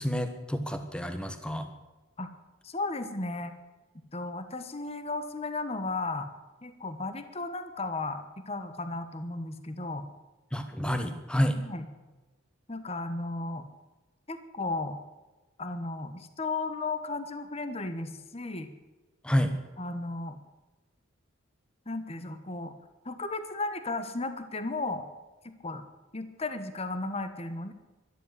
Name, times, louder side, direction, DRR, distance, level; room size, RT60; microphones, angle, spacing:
voice 1, 0.0-1.7 10.5-11.6 19.2-19.6, equal, 5° left, 7 dB, 1.4 m, -29 dB
voice 2, 2.6-3.5 4.1-6.3 6.6-10.0 11.5-11.8 12.7-13.7 14.3-15.0 15.6-18.7 19.8-20.4 21.9-22.7 23.0-25.0 25.4-25.8 26.1-27.7, left 2 dB, 30° left, 10 dB, 1.2 m, -35 dB
13.0 x 12.5 x 8.2 m, 1.2 s
head